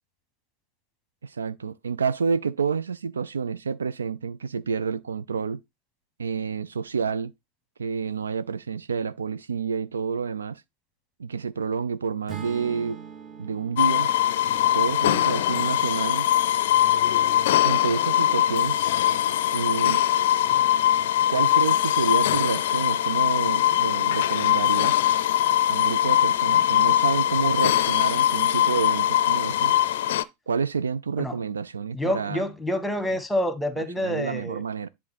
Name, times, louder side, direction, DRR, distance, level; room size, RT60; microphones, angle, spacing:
voice 1, 1.2-5.6 6.2-7.3 7.8-10.6 11.2-13.0 13.4-14.1 14.7-16.3 17.6-18.8 19.5-20.0 21.3-25.0 25.7-29.7 30.5-32.4 33.8-34.9, right 5 dB, 70° right, 0.3 m, -29 dB
Acoustic guitar / Strum, 12.3-16.5, right 7 dB, 25° right, 1.1 m, -43 dB
sound 1, 13.8-30.2, left 12 dB, 55° left, 0.5 m, -22 dB
voice 2, 31.9-34.6, left 1 dB, 5° left, 1.2 m, -27 dB
10.5 x 3.6 x 4.2 m
figure-of-eight pair, 90°, 0 cm